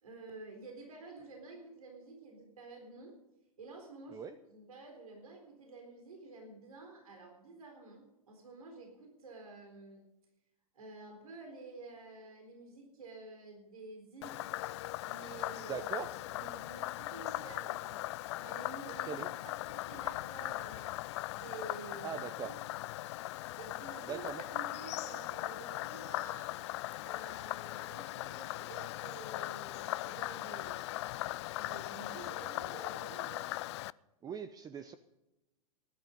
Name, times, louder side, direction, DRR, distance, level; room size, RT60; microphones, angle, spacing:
voice 1, 0.0-3.2 3.6-10.0 10.7-14.4 15.1-15.8 16.1-18.0 18.4-20.9 21.3-22.5 23.6-26.6 27.0-30.8 31.6-33.5, right 3 dB, 70° right, 3 dB, 4.1 m, -50 dB
Frog, 14.2-33.9, left 17 dB, 50° left, 0.4 m, -39 dB
voice 2, 15.6-16.1 19.1-19.3 22.0-22.5 24.1-24.4 34.2-35.0, right 7 dB, 20° right, 12 dB, 0.7 m, -41 dB
19.0 x 11.5 x 5.3 m, 0.95 s
figure-of-eight pair, 100°, 19 cm